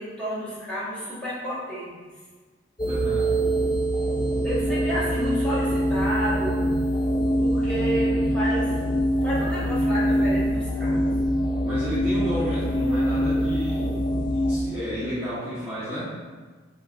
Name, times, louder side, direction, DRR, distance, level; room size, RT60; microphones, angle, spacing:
voice 1, 0.0-1.9 4.4-6.6 7.4-8.7 9.2-11.0, equal, 5° left, -11 dB, 1.4 m, -30 dB
sound 1, 2.8-14.6, equal, 20° left, 0.4 m, -24 dB
voice 2, 2.9-3.4 11.6-13.9 14.3-16.1, equal, 10° right, -14 dB, 1.1 m, -31 dB
5.2 x 3.8 x 2.5 m, 1.4 s
head